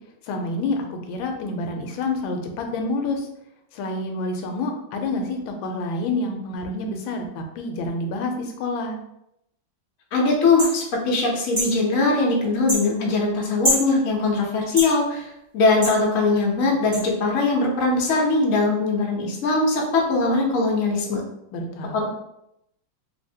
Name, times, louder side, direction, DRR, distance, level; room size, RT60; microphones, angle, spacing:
voice 1, 0.2-3.3 3.7-9.0 21.5-22.1, left 2 dB, 80° left, 4 dB, 1.3 m, -28 dB
voice 2, 10.1-15.3 15.5-21.2 21.9-22.1, left 3 dB, 65° left, -2 dB, 0.8 m, -21 dB
sound 1, 10.6-10.7 11.5-11.7 12.7-12.8 13.6-13.9 14.8-14.9 15.8-16.0 16.9-17.0, equal, 15° right, 0.9 m, -23 dB
3.1 x 2.8 x 2.7 m, 0.81 s
omnidirectional pair, 2.2 m